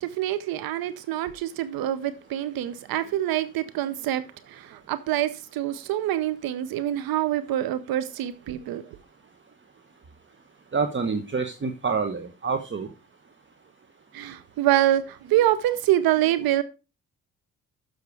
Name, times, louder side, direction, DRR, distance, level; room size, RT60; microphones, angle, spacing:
voice 1, 0.0-4.2 4.5-8.8 14.1-16.6, right 13 dB, 80° right, 0.8 m, -25 dB
voice 2, 10.7-12.9, right 5 dB, 35° right, 1.1 m, -27 dB
6.9 x 6.4 x 4.7 m
supercardioid pair, 55°, 35 cm